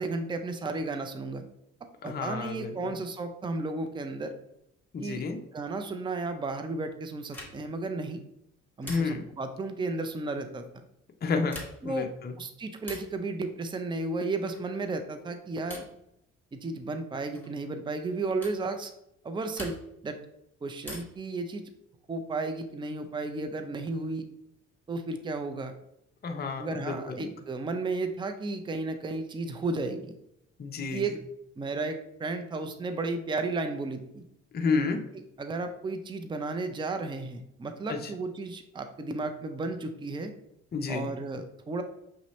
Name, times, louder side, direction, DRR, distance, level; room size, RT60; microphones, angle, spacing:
voice 1, 0.0-1.4 2.0-4.3 5.0-5.2 5.5-8.2 8.8-10.7 11.8-12.1 12.4-15.8 16.5-18.9 19.2-19.8 20.0-20.2 20.6-21.7 22.1-24.3 24.9-25.7 26.6-30.1 30.9-31.1 31.6-34.2 35.4-40.3 40.9-41.8, right 3 dB, 15° right, 7 dB, 0.5 m, -33 dB
voice 2, 2.0-2.9 4.9-5.4 8.8-9.2 11.2-12.3 26.2-27.3 30.6-31.0 34.5-35.0 37.9-38.0 40.7-41.1, left 4 dB, 35° left, 4 dB, 0.6 m, -31 dB
sound 1, 7.3-7.8 8.8-9.4 11.4-12.0 12.8-13.2 14.5-14.8 15.7-16.0 17.3-17.6 18.4-18.6 19.5-20.1 20.8-21.3 22.8-23.5, left 2 dB, 5° left, 1.4 m, -45 dB
6.1 x 2.8 x 3.1 m, 0.79 s
cardioid pair, 90°, 30 cm